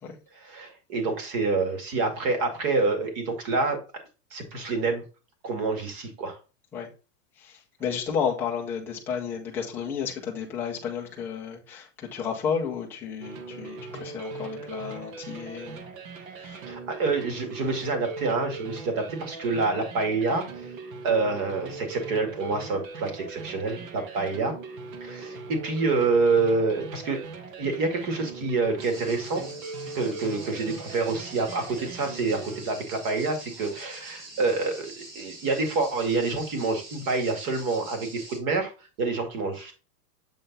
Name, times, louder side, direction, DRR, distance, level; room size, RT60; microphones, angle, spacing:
voice 1, 0.4-3.8 4.3-5.1 5.4-6.4 16.7-20.7 21.0-24.6 25.0-27.2 27.6-29.5 29.9-38.7 39.0-39.8, right 3 dB, 40° right, 2.1 m, -27 dB
voice 2, 7.4-15.8 16.4-16.6, left 7 dB, 5° left, 0.4 m, -32 dB
sound 1, 13.2-32.7, right 3 dB, 55° right, 1.4 m, -40 dB
sound 2, 28.8-38.4, right 2 dB, 85° right, 3.8 m, -45 dB
7.8 x 3.7 x 4.0 m
supercardioid pair, 160°, 47 cm